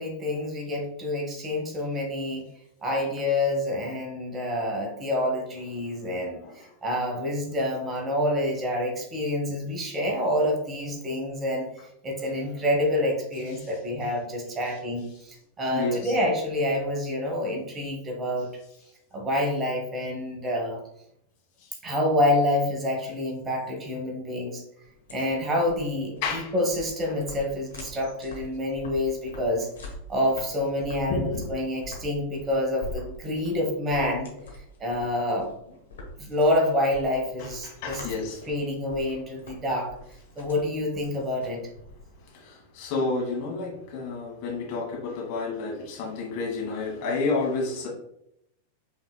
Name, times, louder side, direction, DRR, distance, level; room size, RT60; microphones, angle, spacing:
voice 1, 0.0-2.5 2.8-11.7 12.0-18.5 19.1-20.8 21.8-24.6 25.1-29.7 30.1-34.3 34.8-35.5 36.2-38.0 38.5-39.9 40.4-41.7, left 1 dB, 20° right, 0 dB, 1.1 m, -27 dB
voice 2, 15.7-16.1 21.6-21.7 26.2-26.5 31.1-31.5 37.4-38.5 42.3-47.9, left 3 dB, 45° left, -2 dB, 1.7 m, -30 dB
sound 1, 24.8-42.3, left 2 dB, 65° left, 1.1 m, -44 dB
5.4 x 3.5 x 2.2 m, 0.77 s
figure-of-eight pair, 90°, 0 cm